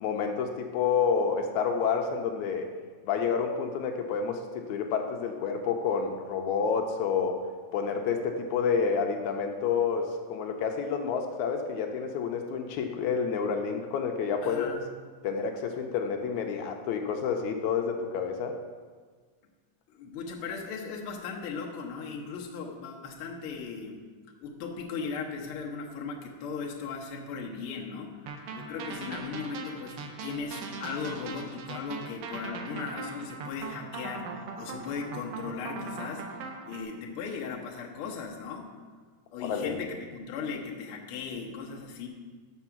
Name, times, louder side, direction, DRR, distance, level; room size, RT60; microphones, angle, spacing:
voice 1, 0.0-2.7 3.0-7.4 7.7-14.7 15.2-18.6 39.5-39.8, left 6 dB, 80° left, 4 dB, 1.9 m, -29 dB
voice 2, 14.4-14.9 19.9-24.0 24.4-38.7 39.3-42.1, left 5 dB, 65° left, -1 dB, 1.5 m, -37 dB
sound 1, 28.3-36.8, right 4 dB, 75° right, 1.3 m, -40 dB
6.9 x 6.1 x 5.8 m, 1.5 s
omnidirectional pair, 3.4 m